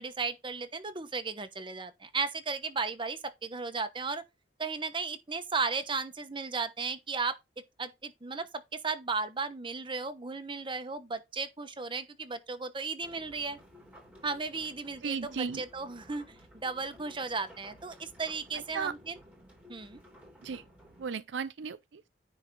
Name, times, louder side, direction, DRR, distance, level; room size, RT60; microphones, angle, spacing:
voice 1, 0.0-4.2 4.6-7.4 7.8-13.6 14.2-16.3 16.5-19.2 19.7-20.0, right 4 dB, 30° right, 1.0 m, -35 dB
sound 1, 13.0-21.1, equal, 10° right, 3.0 m, -55 dB
voice 2, 15.0-15.6 18.5-18.9 20.4-20.6 21.0-22.0, right 6 dB, 80° right, 0.5 m, -35 dB
9.8 x 3.5 x 5.4 m
head